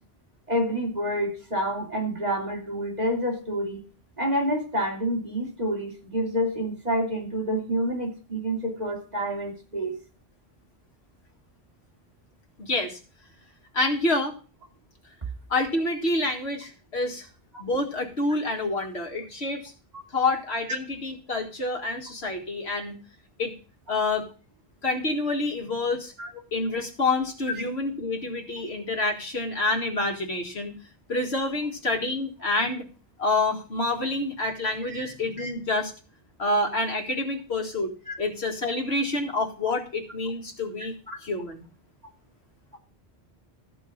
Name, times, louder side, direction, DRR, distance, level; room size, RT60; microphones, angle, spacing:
voice 1, 0.5-3.8 4.2-10.0 26.2-26.3 34.8-35.1 35.4-35.5 38.1-38.2 41.1-41.2, equal, 40° right, -1 dB, 3.0 m, -28 dB
voice 2, 12.6-13.0 13.7-14.3 15.5-17.3 17.6-19.7 20.1-23.0 23.4-23.5 23.9-24.3 24.8-26.1 26.5-30.8 31.1-32.8 33.2-35.9 36.4-37.9 38.2-41.0 41.2-41.7, left 2 dB, 90° left, 3 dB, 2.1 m, -27 dB
14.0 x 4.7 x 7.1 m, 0.36 s
omnidirectional pair, 1.1 m